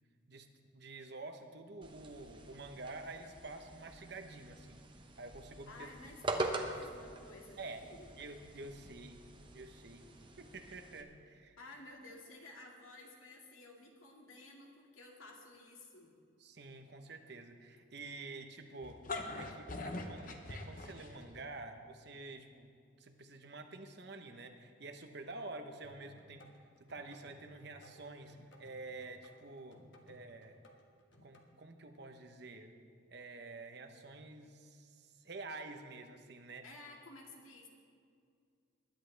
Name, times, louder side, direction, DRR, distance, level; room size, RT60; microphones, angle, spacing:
voice 1, 0.7-4.8 5.2-5.9 6.3-6.5 7.6-7.9 8.2-9.2 9.5-10.1 10.4-11.6 16.4-19.0 19.3-22.7 23.0-29.8 30.1-30.6 31.2-32.8 33.1-36.7, right 3 dB, 55° right, 5 dB, 1.0 m, -49 dB
sound 1, 1.8-11.0, right 2 dB, 25° right, 0.8 m, -44 dB
voice 2, 5.7-8.1 11.6-16.2 36.6-37.7, left 2 dB, 85° left, 0 dB, 2.2 m, -54 dB
sound 2, 18.8-21.4, left 2 dB, 40° left, 1.0 m, -42 dB
sound 3, 25.8-31.5, left 1 dB, 65° left, 1.4 m, -61 dB
20.5 x 10.5 x 3.4 m, 2.2 s
head